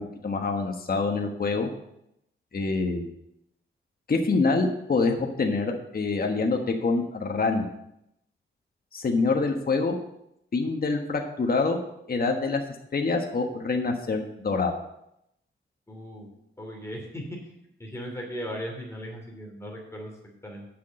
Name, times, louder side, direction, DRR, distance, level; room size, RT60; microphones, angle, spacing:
voice 1, 0.0-1.7 2.5-3.1 4.1-7.6 8.9-10.0 10.5-11.8 12.1-12.6 12.9-14.8, left 3 dB, 45° left, 3 dB, 1.4 m, -26 dB
voice 2, 15.9-16.3 16.6-17.2 17.8-20.7, equal, 15° left, -1 dB, 2.9 m, -37 dB
8.4 x 6.0 x 7.7 m, 0.79 s
cardioid pair, 90°, 21 cm